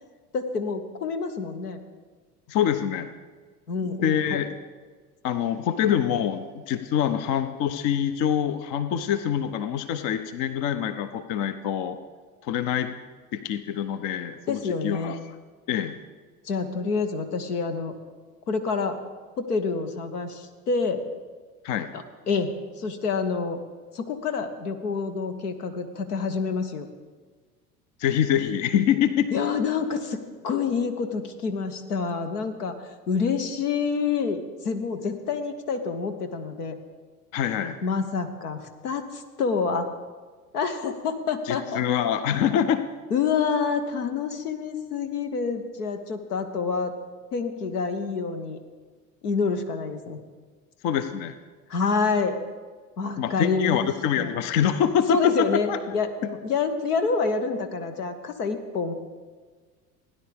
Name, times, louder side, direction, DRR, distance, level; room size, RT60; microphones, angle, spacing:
voice 1, 0.3-1.8 3.7-4.4 14.5-15.2 16.4-18.0 18.5-19.0 19.4-21.0 22.3-23.6 23.9-26.9 29.3-36.8 37.8-39.9 40.5-41.8 43.1-46.9 47.3-48.6 49.2-50.2 51.7-52.4 53.0-53.9 54.2-54.3 55.1-58.9, left 5 dB, 75° left, 7 dB, 1.2 m, -27 dB
voice 2, 2.5-3.1 3.8-4.5 5.2-12.0 12.4-12.9 13.3-15.4 15.7-16.0 21.6-21.9 28.0-29.3 37.3-37.8 41.5-42.8 50.8-51.3 53.2-55.8, left 9 dB, 45° left, 11 dB, 0.7 m, -25 dB
16.5 x 10.0 x 3.5 m, 1.5 s
figure-of-eight pair, 75°, 46 cm